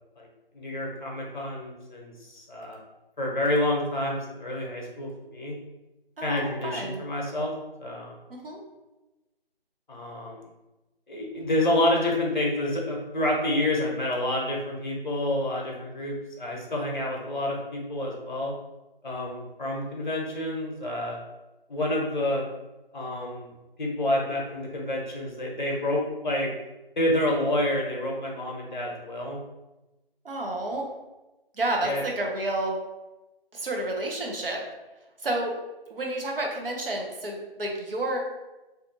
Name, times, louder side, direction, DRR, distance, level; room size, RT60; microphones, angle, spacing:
voice 1, 0.5-2.8 3.2-5.5 6.2-7.5 7.8-8.1 9.9-10.4 11.1-18.5 19.0-21.2 21.7-22.4 22.9-23.5 23.8-26.5 27.0-29.4 31.8-32.0, left 1 dB, 50° left, -1 dB, 0.8 m, -28 dB
voice 2, 6.2-7.0 8.3-8.6 30.2-30.9 31.5-32.8 33.5-34.6 35.2-35.5 35.9-38.2, right 2 dB, 65° right, 0 dB, 0.7 m, -30 dB
2.6 x 2.4 x 2.5 m, 1.0 s
figure-of-eight pair, 160°, 30 cm